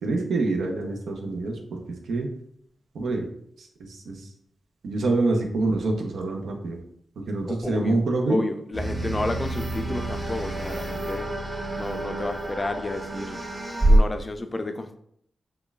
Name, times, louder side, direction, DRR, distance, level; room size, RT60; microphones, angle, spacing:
voice 1, 0.0-1.8 2.1-2.3 2.9-3.3 3.9-4.2 4.8-6.8 7.3-8.4, right 2 dB, 90° right, 0.6 m, -26 dB
voice 2, 7.4-8.0 8.3-11.3 11.8-13.4 13.8-15.0, left 2 dB, 25° left, 0.3 m, -31 dB
sound 1, 8.7-14.0, right 1 dB, 40° right, 1.3 m, -26 dB
5.1 x 2.2 x 2.3 m
cardioid pair, 80°, 0 cm